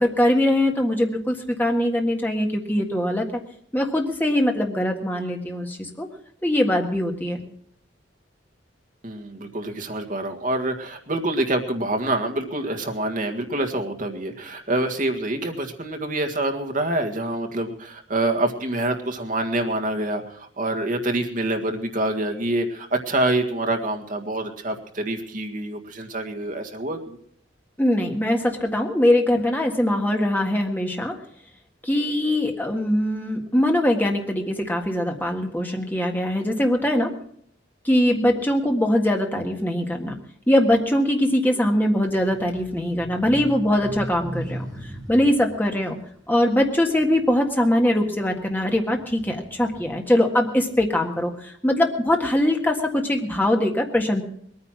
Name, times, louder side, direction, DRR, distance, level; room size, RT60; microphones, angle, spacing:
voice 1, 0.0-3.3 3.7-6.1 6.4-7.4 27.8-31.1 31.8-37.1 37.8-40.2 40.5-44.6 45.1-46.0 46.3-54.2, left 1 dB, 10° left, 2 dB, 1.6 m, -22 dB
voice 2, 9.0-27.2, right 1 dB, 45° right, 5 dB, 1.7 m, -26 dB
sound 1, 42.0-47.6 48.1-50.0, right 1 dB, 20° right, 3.3 m, -38 dB
20.5 x 9.6 x 6.0 m, 0.65 s
head